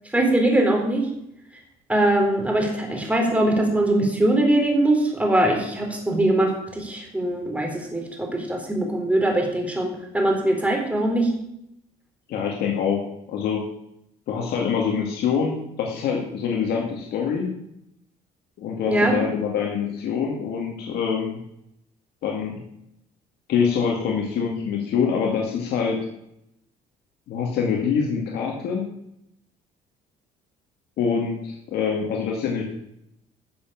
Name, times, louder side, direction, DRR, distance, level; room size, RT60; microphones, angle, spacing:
voice 1, 0.1-1.1 1.9-11.3 18.9-19.2, right 1 dB, 10° right, 1 dB, 3.8 m, -21 dB
voice 2, 12.3-13.6 14.3-17.5 18.6-21.4 22.2-22.6 23.5-26.0 27.3-28.9 31.0-32.6, left 6 dB, 75° left, 0 dB, 2.2 m, -25 dB
12.0 x 7.2 x 7.5 m, 0.79 s
cardioid pair, 110°, 17 cm